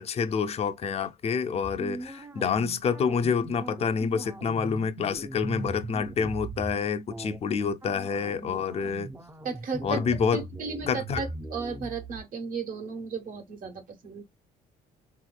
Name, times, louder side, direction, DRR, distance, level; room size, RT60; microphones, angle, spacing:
voice 1, 0.0-9.1 9.8-10.4 10.9-11.2, left 6 dB, 40° left, 0.5 m, -28 dB
sound 1, 1.6-6.7 7.1-7.4 7.8-12.2, right 2 dB, 15° right, 0.5 m, -40 dB
voice 2, 9.4-10.0 10.3-14.2, right 5 dB, 55° right, 1.3 m, -35 dB
3.6 x 2.9 x 2.3 m
cardioid pair, 110°, 17 cm